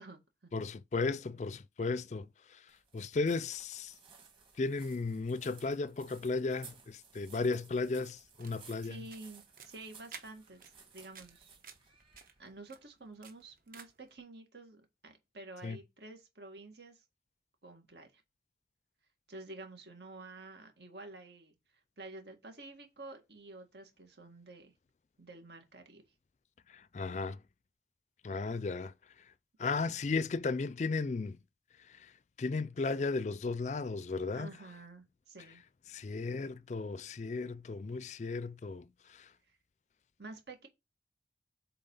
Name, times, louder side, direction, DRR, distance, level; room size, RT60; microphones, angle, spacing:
voice 1, 0.0-0.5 8.8-11.6 12.4-17.0 17.6-18.2 19.3-21.6 22.0-24.7 25.2-26.0 34.3-35.6 40.2-40.7, right 2 dB, 75° right, 2.0 m, -50 dB
voice 2, 0.5-2.3 2.5-2.6 2.9-3.9 4.6-9.0 15.6-15.8 26.7-27.4 28.2-28.9 29.6-31.4 32.4-34.5 35.9-38.8 39.1-39.3, left 3 dB, 40° left, 0.4 m, -35 dB
sound 1, 2.7-12.6, right 5 dB, 30° right, 2.1 m, -58 dB
sound 2, 8.2-14.1, right 6 dB, 50° right, 1.1 m, -55 dB
7.8 x 4.0 x 5.5 m
head